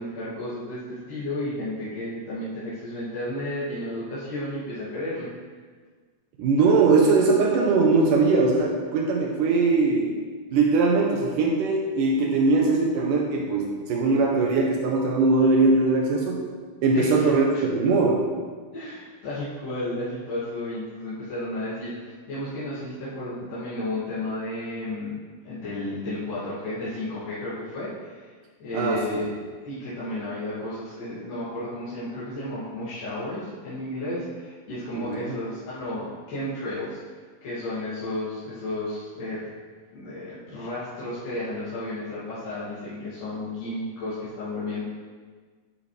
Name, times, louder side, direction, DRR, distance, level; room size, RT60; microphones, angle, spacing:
voice 1, 0.0-5.3 16.9-17.6 18.7-25.2 25.4-28.3 28.6-29.3 29.6-37.0 37.4-39.4 39.9-44.8, left 1 dB, 85° left, -13 dB, 4.4 m, -33 dB
voice 2, 6.4-10.2 10.5-16.4 16.8-18.2 28.7-29.2 35.0-35.4, right 3 dB, 85° right, -1 dB, 2.7 m, -21 dB
11.5 x 9.6 x 3.5 m, 1.5 s
omnidirectional pair, 3.7 m